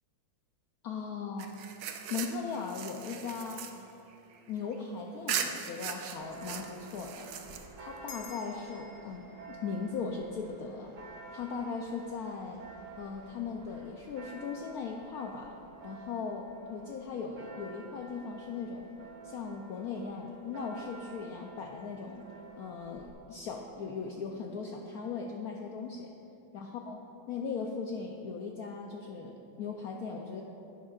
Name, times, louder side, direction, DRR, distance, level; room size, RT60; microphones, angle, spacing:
voice 1, 0.8-1.5 2.1-3.7 4.5-7.3 7.8-10.9 11.3-12.6 13.0-15.5 15.8-18.9 19.2-22.2 22.6-26.1 26.5-27.0 27.3-30.4, left 5 dB, 90° left, 1 dB, 0.8 m, -38 dB
sound 1, 1.4-4.8 5.3-8.0, right 8 dB, 80° right, 1.4 m, -39 dB
Church bell, 6.1-23.1, right 4 dB, 55° right, 0.9 m, -51 dB
sound 2, 8.1-12.8, left 6 dB, 60° left, 1.2 m, -54 dB
11.0 x 9.5 x 2.4 m, 2.7 s
omnidirectional pair, 2.2 m